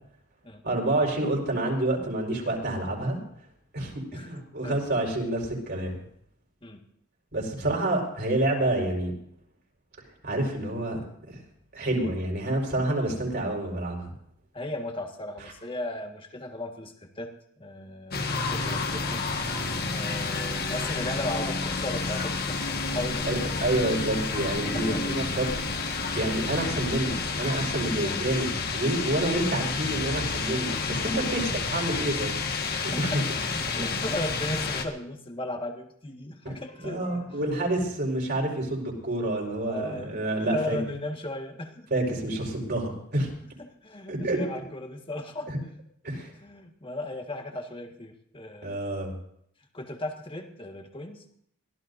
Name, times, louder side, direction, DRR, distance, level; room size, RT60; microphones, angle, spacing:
voice 1, 0.6-3.2 3.7-6.0 7.3-9.1 10.2-11.0 11.3-11.4 11.7-14.1 23.3-25.5 26.1-32.3 32.7-33.2 33.8-33.9 36.4-40.8 41.9-43.3 44.1-44.6 45.5-45.6 46.0-46.3 48.6-49.1, right 1 dB, 50° right, 0 dB, 4.9 m, -28 dB
voice 2, 4.1-4.8 6.6-6.8 14.5-17.3 17.6-19.2 19.9-22.6 22.9-23.4 23.8-24.1 24.7-25.6 28.0-28.2 31.0-31.6 32.5-37.5 39.6-41.9 43.6-45.8 46.4-49.1 49.7-51.2, left 1 dB, 25° left, 4 dB, 1.7 m, -37 dB
sound 1, 18.1-34.8, left 4 dB, 50° left, 1.7 m, -30 dB
23.5 x 16.0 x 2.7 m, 0.68 s
head